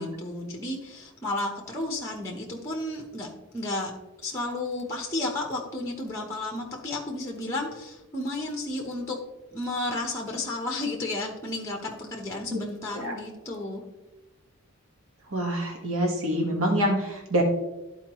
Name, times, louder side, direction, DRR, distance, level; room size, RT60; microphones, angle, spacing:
voice 1, 0.0-3.3 3.5-3.9 4.2-9.2 9.5-13.8, left 2 dB, 15° left, 0 dB, 0.8 m, -32 dB
voice 2, 15.3-17.4, right 1 dB, 70° right, 0 dB, 1.4 m, -26 dB
13.0 x 4.5 x 3.0 m, 1.1 s
head